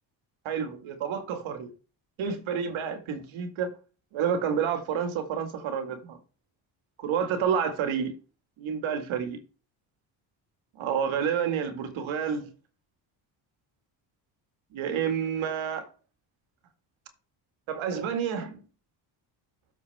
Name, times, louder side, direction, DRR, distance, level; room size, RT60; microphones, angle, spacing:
voice 1, 0.5-1.7 2.2-3.7 4.1-6.2 7.0-8.1 8.6-9.4 10.8-12.5 14.7-15.9 17.7-18.6, right 7 dB, 70° right, 2.1 m, -29 dB
13.5 x 4.6 x 3.5 m
supercardioid pair, 80°, 49 cm